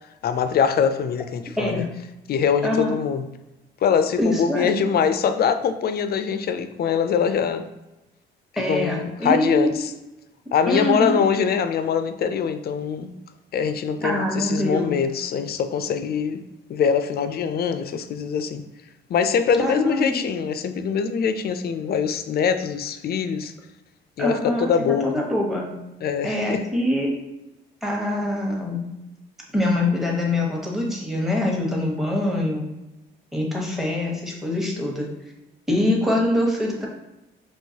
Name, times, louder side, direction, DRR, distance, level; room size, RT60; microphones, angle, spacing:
voice 1, 0.2-1.9 2.3-3.3 3.8-7.7 8.7-9.9 10.5-13.1 13.5-16.4 16.7-18.6 19.1-23.5 24.2-25.2 26.0-26.6, left 7 dB, 50° left, 9 dB, 0.4 m, -23 dB
voice 2, 1.6-1.9 2.6-2.9 4.2-4.7 8.6-9.7 10.7-11.2 14.0-14.9 19.6-20.2 24.2-24.7 25.0-25.7 26.2-27.1 27.8-28.9 29.5-32.7 33.3-35.1 35.7-36.9, left 1 dB, ahead, -2 dB, 1.1 m, -24 dB
4.6 x 3.1 x 2.8 m, 0.98 s
cardioid pair, 90°, 20 cm